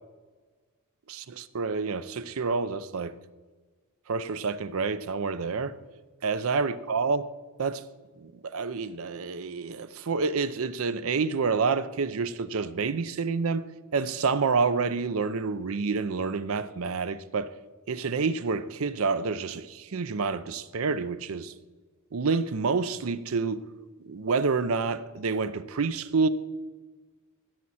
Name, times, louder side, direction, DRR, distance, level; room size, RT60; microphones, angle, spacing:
voice 1, 1.1-3.1 4.1-5.7 6.2-7.2 7.6-7.8 8.2-13.7 13.9-17.5 17.9-21.5 22.1-23.6 24.1-26.3, right 4 dB, 70° right, 0.6 m, -28 dB
15.5 x 7.5 x 4.2 m
head